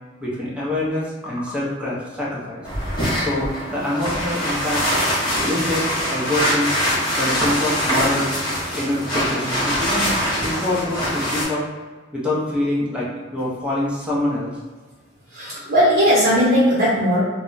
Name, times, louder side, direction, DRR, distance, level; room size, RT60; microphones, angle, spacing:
voice 1, 0.2-2.7 3.2-4.8 5.4-6.7 7.2-8.3 8.7-10.1 10.4-11.6 12.1-14.6, left 1 dB, 5° right, -7 dB, 0.7 m, -25 dB
sound 1, 2.6-11.4, equal, 25° left, 0.8 m, -23 dB
voice 2, 15.3-17.2, equal, 50° right, -9 dB, 0.8 m, -17 dB
2.2 x 2.1 x 3.8 m, 1.3 s
head